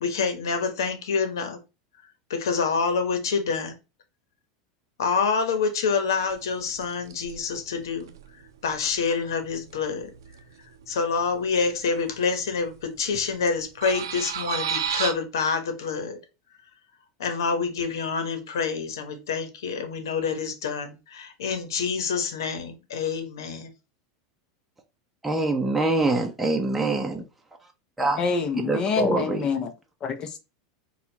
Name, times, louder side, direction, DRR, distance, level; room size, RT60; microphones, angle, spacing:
voice 1, 0.0-1.6 2.3-3.7 5.0-8.1 8.6-10.1 10.9-16.2 17.2-23.7, left 5 dB, 85° left, 1.0 m, -27 dB
sound 1, 6.2-6.4 6.7-10.5 10.8-10.9 11.1-12.2 12.4-13.1 13.4-15.1, right 8 dB, 90° right, 0.6 m, -32 dB
voice 2, 25.2-27.2 28.0-28.2 28.6-29.5, right 2 dB, 5° right, 0.7 m, -24 dB
voice 3, 28.2-29.7 30.0-30.4, left 5 dB, 35° left, 0.9 m, -26 dB
4.2 x 2.4 x 4.0 m
supercardioid pair, 115°, 2 cm